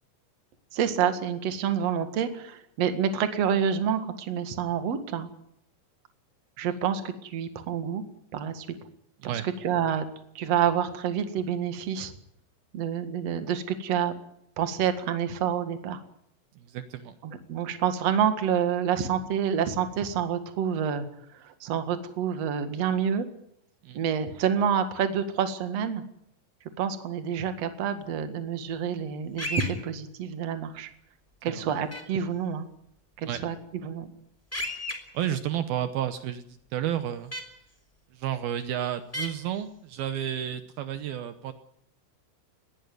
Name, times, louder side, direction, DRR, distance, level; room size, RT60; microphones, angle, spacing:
voice 1, 0.7-5.3 6.6-8.0 8.3-8.7 9.2-10.0 10.3-12.1 12.7-14.1 14.6-16.0 17.2-21.1 21.3-23.3 23.9-26.0 26.8-30.9 31.4-32.7 33.2-33.6 33.8-34.1, right 8 dB, 55° right, 9 dB, 1.8 m, -28 dB
voice 2, 16.6-17.1 23.8-24.0 31.4-31.7 33.2-33.4 35.1-37.3 38.1-41.5, right 10 dB, 90° right, 11 dB, 2.1 m, -31 dB
sound 1, 29.4-29.7 31.9-32.0 34.5-34.9 37.3-37.4 39.1-39.3, left 1 dB, 5° left, 2.6 m, -31 dB
20.5 x 16.5 x 9.4 m, 0.73 s
omnidirectional pair, 5.7 m